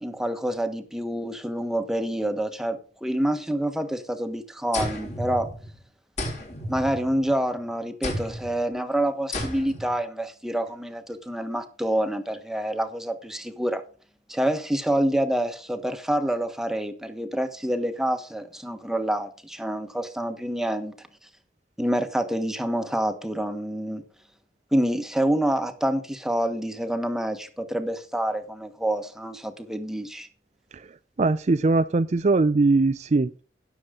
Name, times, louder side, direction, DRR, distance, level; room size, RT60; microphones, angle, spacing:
voice 1, 0.0-5.5 6.7-13.8 14.3-20.9 21.8-24.0 24.7-30.3, right 1 dB, 5° right, 1.3 m, -27 dB
sound 1, 4.7-5.8 6.2-7.5 8.0-8.6 9.3-10.0, left 1 dB, 40° left, 3.9 m, -33 dB
voice 2, 31.2-33.4, right 3 dB, 40° right, 0.4 m, -21 dB
16.5 x 7.1 x 3.8 m
head